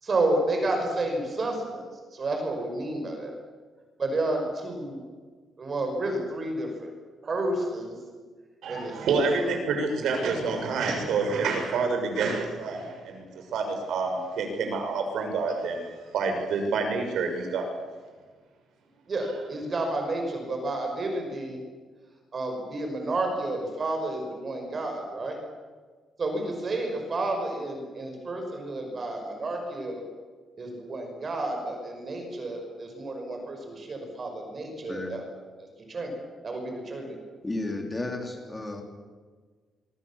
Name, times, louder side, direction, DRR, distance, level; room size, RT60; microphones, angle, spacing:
voice 1, 0.0-1.8 2.1-3.3 4.0-5.0 5.6-6.9 7.2-8.0 8.7-9.6 19.1-21.6 22.3-25.4 26.2-30.0 30.6-35.2 35.6-36.1 36.4-37.2, right 2 dB, 30° right, 3 dB, 5.5 m, -31 dB
voice 2, 8.6-17.7, right 4 dB, 75° right, 4 dB, 6.8 m, -28 dB
voice 3, 37.4-38.8, left 2 dB, 15° left, 3 dB, 3.7 m, -33 dB
25.0 x 24.0 x 7.4 m, 1.4 s
cardioid pair, 175°, 0 cm